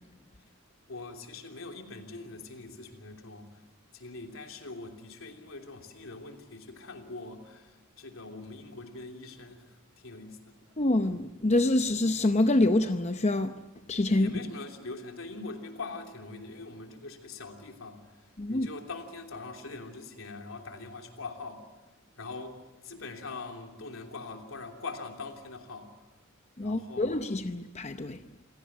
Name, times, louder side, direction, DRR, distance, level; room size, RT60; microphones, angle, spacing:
voice 1, 0.9-3.6 3.9-10.6 11.1-11.2 14.1-18.0 18.5-21.6 22.2-25.9 26.6-27.2, left 3 dB, 75° left, 3.2 m, -42 dB
voice 2, 10.8-13.5 13.9-14.3 18.4-18.7 26.6-28.2, left 2 dB, 30° left, 0.7 m, -26 dB
27.5 x 17.5 x 7.5 m
head